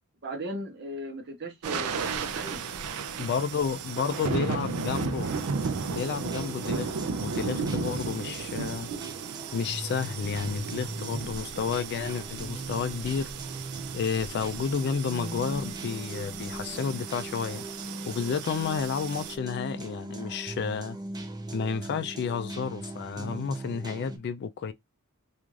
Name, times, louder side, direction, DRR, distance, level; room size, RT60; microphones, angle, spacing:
voice 1, 0.2-2.6, right 1 dB, 50° right, 0.8 m, -37 dB
sound 1, 1.6-19.4, right 5 dB, 85° right, 0.4 m, -35 dB
voice 2, 3.2-5.3 5.9-8.9 9.5-13.7 13.9-21.0 21.5-24.7, left 6 dB, 50° left, 0.3 m, -31 dB
sound 2, 5.4-24.2, right 2 dB, 20° right, 0.4 m, -41 dB
2.4 x 2.4 x 3.0 m
head